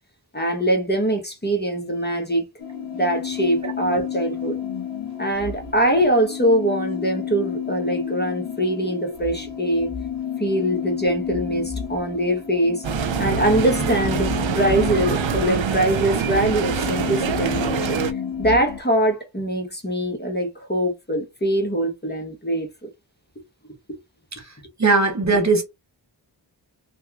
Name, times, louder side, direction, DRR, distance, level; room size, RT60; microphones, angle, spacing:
voice 1, 0.3-2.4 2.9-4.6 5.2-9.9 10.4-12.8 13.2-18.0 18.4-22.7, right 1 dB, 20° left, 1.0 m, -23 dB
sound 1, 2.6-18.8, left 8 dB, 80° left, 0.8 m, -31 dB
sound 2, 12.8-18.1, right 7 dB, 90° right, 0.6 m, -25 dB
voice 2, 24.8-25.6, right 3 dB, 40° right, 1.0 m, -19 dB
3.1 x 2.9 x 2.3 m
wide cardioid pair, 65°, 45 cm